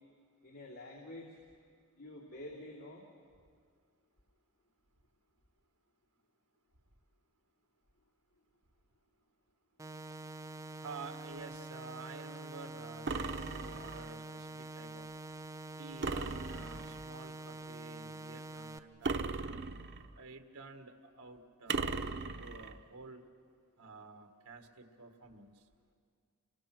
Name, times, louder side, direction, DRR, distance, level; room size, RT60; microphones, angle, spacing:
voice 1, 0.4-1.4 1.9-3.0, left 1 dB, 85° left, -4 dB, 3.0 m, -48 dB
sound 1, 9.8-18.8, right 2 dB, 15° right, 0.5 m, -46 dB
voice 2, 10.8-15.1 15.8-19.2 20.2-23.2 23.8-25.5, right 3 dB, 90° right, 6 dB, 1.7 m, -50 dB
sound 2, 13.1-14.1 16.0-17.1 19.0-20.2 21.7-22.8, right 4 dB, 50° right, 0.8 m, -37 dB
30.0 x 23.5 x 6.1 m, 2.1 s
head